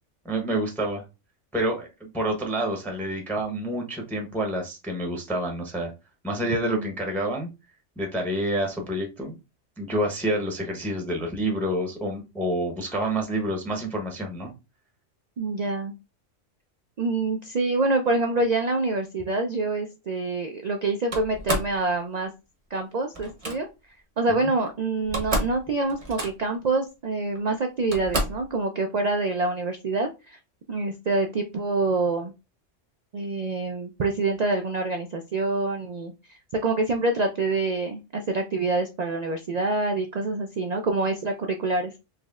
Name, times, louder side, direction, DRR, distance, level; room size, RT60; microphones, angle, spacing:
voice 1, 0.2-1.0 1.5-5.9 6.2-7.5 8.0-9.4 9.8-14.5 24.3-24.5, right 1 dB, ahead, 2 dB, 0.7 m, -28 dB
voice 2, 15.4-15.9 17.0-22.3 22.7-23.7 24.2-30.4 30.7-32.3 33.1-41.9, right 3 dB, 75° right, 5 dB, 0.3 m, -26 dB
Slam, 21.1-21.8 23.1-23.6 24.7-24.8 25.0-25.6 25.9-26.6 27.3-27.4 27.9-28.5, right 1 dB, 35° right, 0.8 m, -29 dB
4.2 x 3.0 x 2.4 m, 0.26 s
omnidirectional pair, 1.3 m